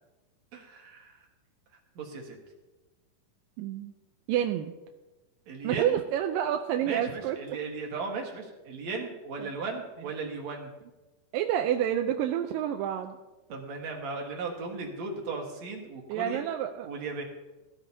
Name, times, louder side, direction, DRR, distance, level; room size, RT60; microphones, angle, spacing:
voice 1, 0.5-1.2 2.0-2.4 5.5-6.0 6.8-10.7 13.5-16.4 16.8-17.2, right 4 dB, 55° right, 1 dB, 2.6 m, -36 dB
voice 2, 3.6-3.9 4.3-4.7 5.6-7.4 9.4-9.5 11.3-13.2 16.1-16.9, right 10 dB, 85° right, 5 dB, 2.2 m, -28 dB
18.0 x 12.0 x 2.8 m, 1.1 s
omnidirectional pair, 4.1 m